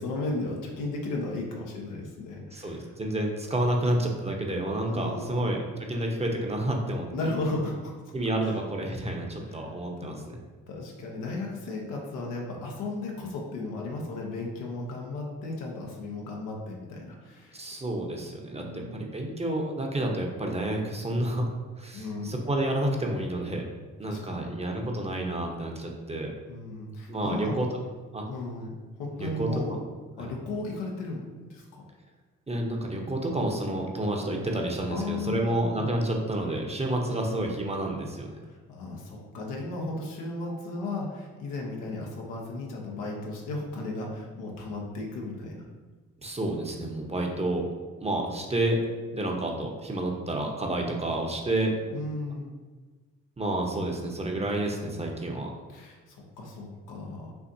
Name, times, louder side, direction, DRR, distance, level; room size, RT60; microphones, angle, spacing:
voice 1, 0.0-2.9 4.9-5.5 7.1-7.9 8.4-8.6 9.5-9.7 10.0-10.1 10.7-17.6 18.6-19.1 21.9-22.4 24.0-24.4 26.5-27.6 28.3-28.7 29.0-29.8 30.2-31.2 31.5-31.8 34.9-35.9 38.4-45.6 50.8-51.0 51.9-52.5 55.7-57.3, left 2 dB, 85° left, -1 dB, 1.0 m, -35 dB
voice 2, 2.5-5.6 5.9-7.1 8.1-10.4 17.5-21.4 21.8-23.6 24.0-26.3 27.1-27.7 28.1-28.2 29.1-29.8 30.2-30.3 32.5-38.4 46.2-47.6 48.0-48.8 49.1-51.7 53.4-55.5, right 1 dB, 20° right, 1 dB, 0.9 m, -29 dB
5.8 x 2.8 x 2.7 m, 1.4 s
supercardioid pair, 60°, 31 cm